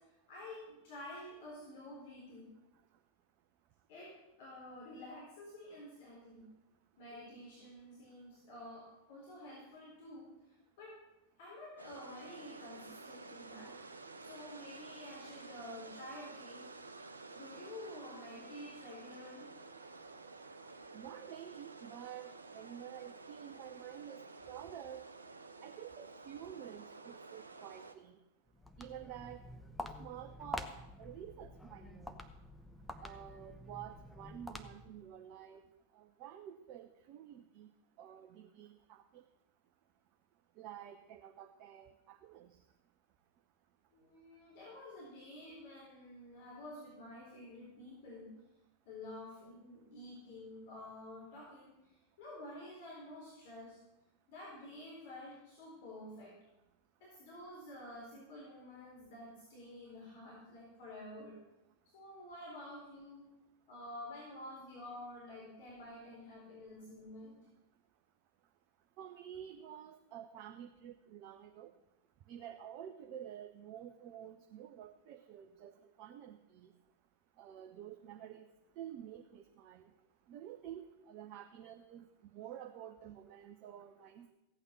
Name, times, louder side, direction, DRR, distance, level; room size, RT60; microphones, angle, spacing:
voice 1, 0.0-2.5 3.9-6.5 7.0-11.0 11.4-13.8 14.2-16.8 17.3-19.5 43.9-48.3 48.9-53.8 54.3-56.4 57.0-61.4 61.9-63.3 63.7-67.4, left 1 dB, 50° left, -5 dB, 4.2 m, -50 dB
sound 1, 11.8-27.9, right 3 dB, 75° right, 0.8 m, -52 dB
voice 2, 20.9-25.1 25.6-28.2 28.8-29.4 29.8-30.7 31.0-32.2 33.0-35.6 35.9-37.7 38.0-39.2 40.6-42.5 69.0-71.7 72.3-75.7 76.0-76.7 77.4-78.5 78.8-79.9 80.3-84.3, right 10 dB, 40° right, 5 dB, 0.8 m, -50 dB
Walk footsteps, 28.5-35.0, left 1 dB, 5° left, 0.9 m, -47 dB
15.5 x 8.9 x 6.0 m, 0.92 s
figure-of-eight pair, 90°, 0 cm